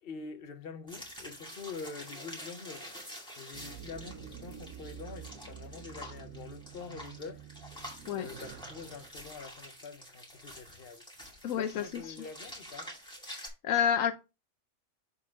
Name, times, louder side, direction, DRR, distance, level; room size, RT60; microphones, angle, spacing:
voice 1, 0.0-7.5 7.8-11.0 11.3-12.9, left 5 dB, 45° left, 1.1 m, -46 dB
sound 1, 0.9-13.5, equal, 5° left, 2.3 m, -48 dB
sound 2, 3.5-9.1, right 9 dB, 70° right, 1.1 m, -48 dB
voice 2, 11.4-12.2 13.3-14.1, left 8 dB, 75° left, 1.0 m, -30 dB
6.9 x 4.7 x 3.6 m
omnidirectional pair, 1.5 m